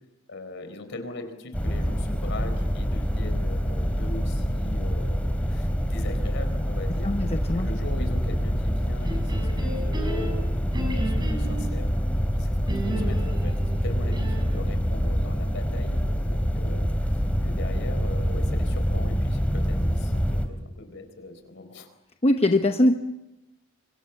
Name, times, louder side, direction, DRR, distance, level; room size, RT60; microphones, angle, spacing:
voice 1, 0.3-7.2 7.5-12.0 12.3-21.9, left 2 dB, 60° left, 8 dB, 4.4 m, -40 dB
sound 1, 1.5-20.5, equal, 5° left, 2.9 m, -26 dB
voice 2, 7.0-7.7 22.2-23.0, left 1 dB, 30° left, 5 dB, 1.0 m, -21 dB
sound 2, 9.0-11.8 12.7-14.7, equal, 20° right, 5.8 m, -33 dB
27.0 x 25.5 x 7.2 m, 0.98 s
head